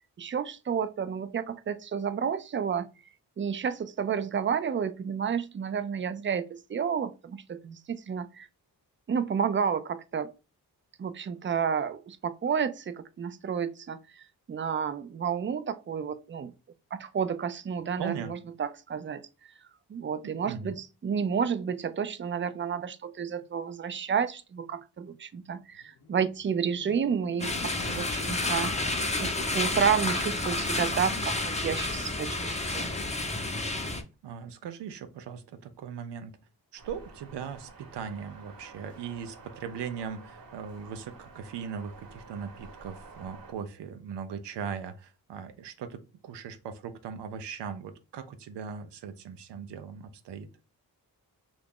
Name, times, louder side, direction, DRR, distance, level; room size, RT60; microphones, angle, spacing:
voice 1, 0.2-2.9 3.4-8.5 9.1-10.3 11.0-14.0 14.5-16.5 16.9-19.3 19.9-28.7 29.2-32.9, right 7 dB, 30° right, 0.4 m, -31 dB
voice 2, 18.0-18.3 20.2-20.8 34.2-36.4 36.7-50.5, right 7 dB, 85° right, 0.6 m, -39 dB
Motorcycle, 25.7-29.2, left 6 dB, 80° left, 0.7 m, -49 dB
sound 1, 27.4-34.0, left 2 dB, 15° left, 0.6 m, -30 dB
sound 2, 36.8-43.5, right 3 dB, 55° right, 1.0 m, -50 dB
2.8 x 2.4 x 3.6 m
cardioid pair, 45°, 41 cm